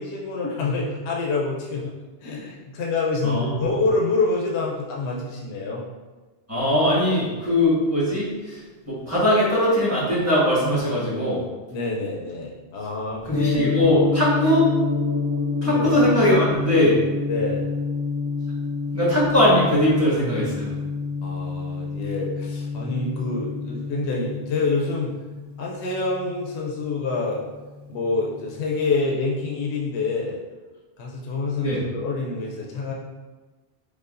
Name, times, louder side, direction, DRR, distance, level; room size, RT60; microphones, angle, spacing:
voice 1, 0.0-1.9 2.2-5.8 11.7-13.7 15.6-16.0 17.3-17.7 21.2-25.1 25.6-27.4 27.9-30.4 31.0-32.9, left 3 dB, 80° left, -2 dB, 0.9 m, -27 dB
voice 2, 3.2-3.8 6.5-11.4 13.3-14.7 15.6-17.0 18.9-20.7 31.6-31.8, left 1 dB, 15° right, -8 dB, 1.2 m, -21 dB
Gong, 13.3-27.4, left 4 dB, 20° left, 0.5 m, -27 dB
4.8 x 2.3 x 2.5 m, 1.2 s
omnidirectional pair, 1.1 m